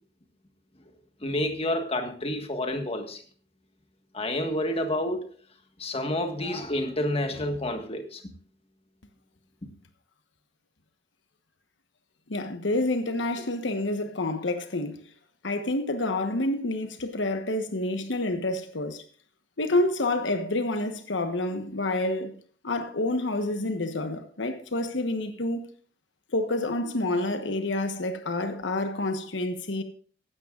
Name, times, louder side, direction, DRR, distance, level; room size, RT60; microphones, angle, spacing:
voice 1, 1.2-3.2 4.1-5.3 5.8-8.2, left 1 dB, 35° left, 1.6 m, -29 dB
voice 2, 12.3-15.0 15.4-19.0 19.6-22.3 22.6-25.7 26.3-29.8, left 2 dB, 85° left, 1.2 m, -28 dB
16.0 x 12.0 x 2.5 m
head